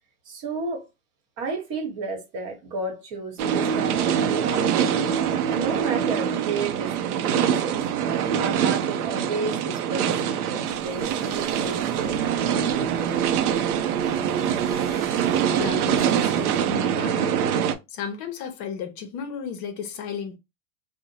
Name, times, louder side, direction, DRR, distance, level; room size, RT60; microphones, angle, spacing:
voice 1, 0.3-0.8 1.4-5.0 5.5-7.8 8.4-13.3, right 3 dB, 45° right, 1.1 m, -33 dB
sound 1, 3.4-17.7, right 8 dB, 85° right, 0.5 m, -24 dB
sound 2, 10.7-16.8, equal, 10° right, 0.9 m, -47 dB
voice 2, 15.5-17.5 17.9-20.4, left 7 dB, 45° left, 0.6 m, -34 dB
2.7 x 2.1 x 2.7 m
hypercardioid pair, 115°, 44 cm